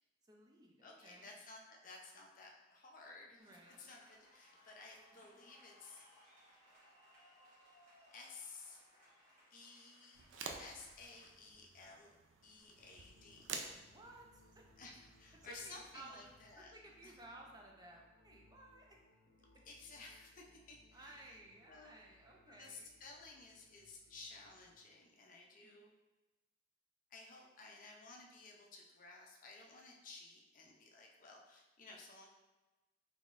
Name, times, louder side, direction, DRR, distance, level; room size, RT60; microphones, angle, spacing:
voice 1, 0.2-1.3 3.4-3.8 5.2-5.3 13.9-14.6 15.4-19.0 20.9-22.9 25.6-25.7, right 2 dB, 20° right, 0 dB, 0.5 m, -57 dB
voice 2, 0.8-6.1 8.1-8.8 9.5-12.2 12.4-13.7 14.8-16.7 17.0-17.1 19.6-21.3 21.7-22.0 22.5-25.9 27.1-32.3, left 3 dB, 45° left, 0 dB, 0.6 m, -55 dB
sound 1, 3.4-11.4, equal, 40° right, 1.3 m, -66 dB
sound 2, 10.1-16.5, right 5 dB, 85° right, 0.4 m, -51 dB
sound 3, 12.8-24.7, left 1 dB, 90° left, 0.6 m, -69 dB
3.7 x 3.6 x 2.5 m, 1.1 s
head